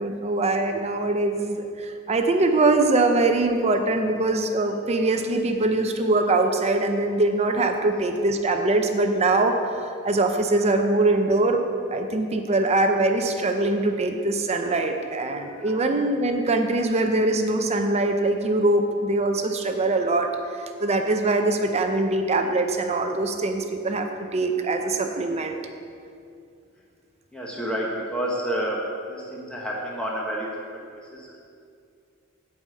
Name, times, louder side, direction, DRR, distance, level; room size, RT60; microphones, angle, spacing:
voice 1, 0.0-11.6 11.9-20.3 20.6-25.6, right 2 dB, 30° right, 5 dB, 0.5 m, -23 dB
voice 2, 15.4-15.8 27.3-30.5 30.7-31.3, right 1 dB, 5° left, -4 dB, 1.0 m, -30 dB
8.9 x 4.9 x 7.6 m, 2.4 s
head